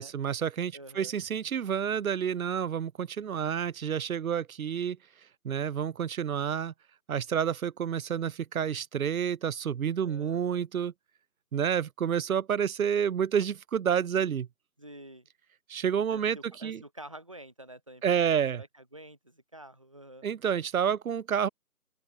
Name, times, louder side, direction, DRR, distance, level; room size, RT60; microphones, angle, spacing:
voice 1, 0.0-5.0 5.4-6.7 7.1-10.9 11.5-14.5 15.7-16.8 18.0-18.6 20.2-21.5, right 8 dB, 65° right, 0.5 m, -29 dB
voice 2, 0.7-1.1 10.0-10.6 14.8-15.3 16.1-20.3, right 1 dB, 20° right, 0.9 m, -48 dB
open air
figure-of-eight pair, 165°, 45 cm